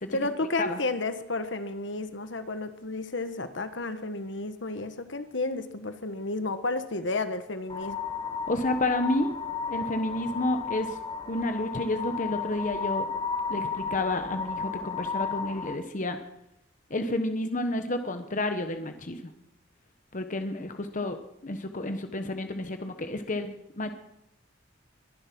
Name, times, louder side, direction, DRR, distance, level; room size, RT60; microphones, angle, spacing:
voice 1, 0.1-8.0, left 2 dB, 65° left, 10 dB, 1.3 m, -32 dB
sound 1, 7.7-15.7, left 5 dB, 25° left, 1.4 m, -33 dB
voice 2, 8.5-9.3 9.7-11.0 11.3-13.0 13.5-16.2 16.9-19.2 20.1-21.2 21.4-24.0, left 2 dB, 40° left, 7 dB, 1.1 m, -30 dB
22.0 x 11.0 x 6.1 m, 0.80 s
head